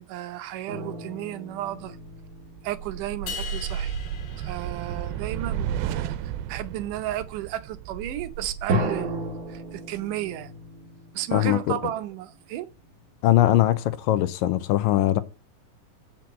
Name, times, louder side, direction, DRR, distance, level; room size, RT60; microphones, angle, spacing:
voice 1, 0.0-2.0 2.6-4.0 4.4-6.1 6.5-10.5 11.1-12.7, right 13 dB, 75° right, 2.1 m, -33 dB
sound 1, 0.7-3.8 8.7-12.3, right 1 dB, 45° right, 1.6 m, -34 dB
sound 2, 1.9-10.3, right 9 dB, 90° right, 2.5 m, -34 dB
sound 3, 3.3-5.6, left 6 dB, 60° left, 2.4 m, -40 dB
voice 2, 11.3-11.8 13.2-15.2, left 14 dB, 80° left, 2.2 m, -21 dB
8.7 x 6.1 x 7.2 m
omnidirectional pair, 4.2 m